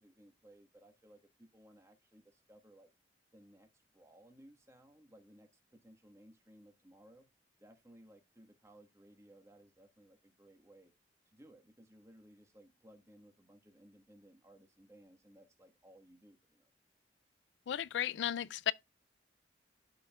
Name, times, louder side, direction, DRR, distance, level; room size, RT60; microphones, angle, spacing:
voice 1, 0.0-2.9 3.3-7.3 7.6-10.9 11.2-16.7, right 1 dB, 15° right, 1.4 m, -61 dB
voice 2, 17.7-18.7, left 10 dB, 85° left, 0.3 m, -34 dB
12.5 x 4.7 x 2.3 m
head